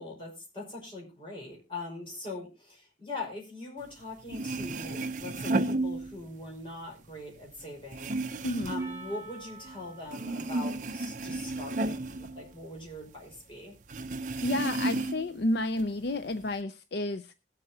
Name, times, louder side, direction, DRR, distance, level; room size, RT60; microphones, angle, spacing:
voice 1, 0.0-13.7, left 2 dB, 30° left, 5.2 m, -42 dB
sound 1, 4.0-4.1 4.3-6.5 6.8-9.8 10.1-13.1 13.3-13.4 13.9-15.4 15.8-16.5, right 2 dB, 45° right, 0.7 m, -33 dB
Percussion, 8.8-13.3, right 3 dB, 15° right, 5.0 m, -52 dB
voice 2, 14.4-17.3, left 2 dB, 65° left, 0.6 m, -31 dB
20.5 x 7.8 x 2.9 m
head